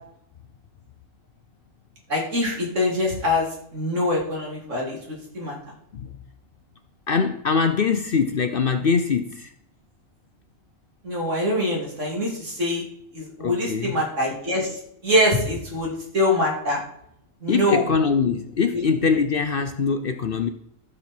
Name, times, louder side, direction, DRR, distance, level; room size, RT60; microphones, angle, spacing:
voice 1, 2.1-5.6 11.0-12.8 13.1-16.8 17.4-17.8 18.7-18.8, left 1 dB, 65° right, -2 dB, 3.1 m, -24 dB
voice 2, 7.1-9.5 13.4-14.0 17.5-20.5, left 5 dB, 55° left, 9 dB, 0.7 m, -23 dB
14.0 x 6.6 x 4.3 m, 0.73 s
omnidirectional pair, 1.4 m